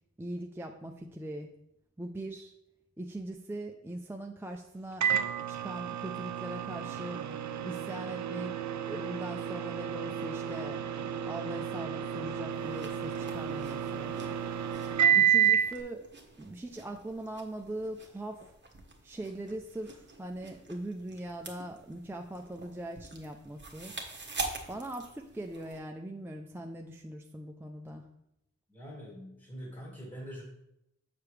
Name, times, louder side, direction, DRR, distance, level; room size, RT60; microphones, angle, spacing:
voice 1, 0.2-1.5 2.0-2.5 3.0-5.1 5.5-7.2 7.6-8.5 8.9-10.8 11.2-14.2 15.1-16.1 16.4-18.5 19.0-24.0 24.7-28.1, right 1 dB, 10° right, 2 dB, 0.5 m, -41 dB
Microwave oven, 5.0-15.8, right 9 dB, 70° right, 0.5 m, -30 dB
sound 1, 12.5-25.8, right 3 dB, 35° right, 1.1 m, -46 dB
voice 2, 15.2-15.5 28.7-30.4, equal, 15° left, -3 dB, 1.9 m, -45 dB
6.6 x 5.9 x 3.3 m, 0.81 s
cardioid pair, 65°, 29 cm